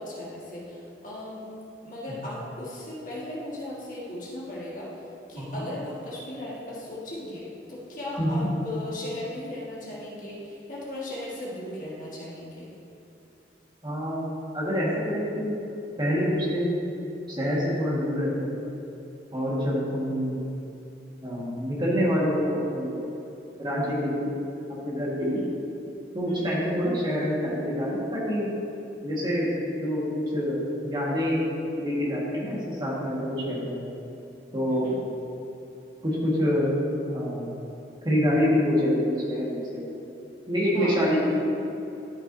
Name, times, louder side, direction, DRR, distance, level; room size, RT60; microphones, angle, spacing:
voice 1, 0.0-1.5 1.8-5.0 5.3-12.7 25.2-25.5 26.3-26.6 34.7-35.0 40.7-41.2, left 1 dB, 45° left, -6 dB, 1.8 m, -37 dB
voice 2, 13.8-14.2 14.5-15.6 16.0-16.8 17.3-18.6 19.3-20.4 21.2-23.0 23.6-24.3 24.8-25.4 26.1-28.5 29.0-31.5 31.8-33.8 34.5-34.9 36.0-36.7 37.1-37.5 38.0-39.8 40.5-41.2, equal, 25° right, -6 dB, 1.7 m, -26 dB
13.5 x 6.1 x 2.7 m, 2.8 s
head